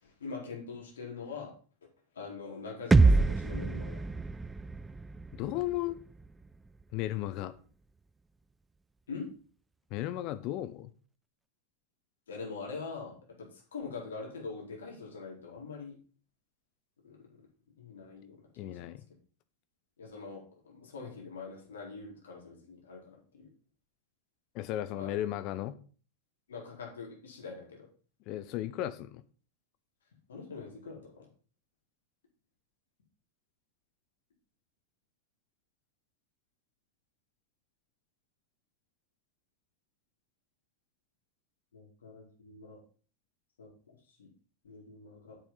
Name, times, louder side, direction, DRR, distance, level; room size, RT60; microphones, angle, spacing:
voice 1, 0.0-1.5 2.1-4.0 9.1-9.3 12.3-16.0 17.0-17.3 17.8-18.4 18.6-18.9 20.0-23.5 24.9-25.2 26.5-27.9 30.3-31.3 41.7-42.8 43.6-44.3 44.6-45.4, left 4 dB, 65° left, -1 dB, 4.2 m, -43 dB
sound 1, 2.9-6.8, right 3 dB, 10° right, 0.3 m, -27 dB
voice 2, 5.3-6.0 6.9-7.5 9.9-10.9 18.6-19.0 24.5-25.8 28.3-29.2, left 14 dB, 40° left, 12 dB, 0.8 m, -35 dB
8.4 x 7.3 x 5.5 m, 0.40 s
figure-of-eight pair, 90°, 0 cm